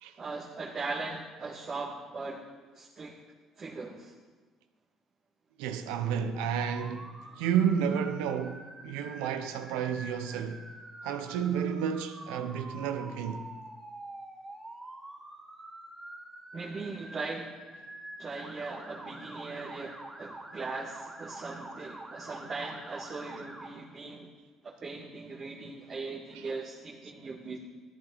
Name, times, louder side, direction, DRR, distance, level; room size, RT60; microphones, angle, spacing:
voice 1, 0.2-2.5 2.7-3.1 3.6-4.1 16.5-17.6 18.2-24.3 24.6-27.6, right 3 dB, 40° right, 2.0 m, -39 dB
voice 2, 5.6-10.7 11.0-13.5 26.3-26.5, right 8 dB, 90° right, 0.8 m, -31 dB
Motor vehicle (road) / Siren, 6.3-23.7, right 2 dB, 15° right, 2.9 m, -46 dB
14.0 x 11.0 x 4.1 m
supercardioid pair, 90°, 0 cm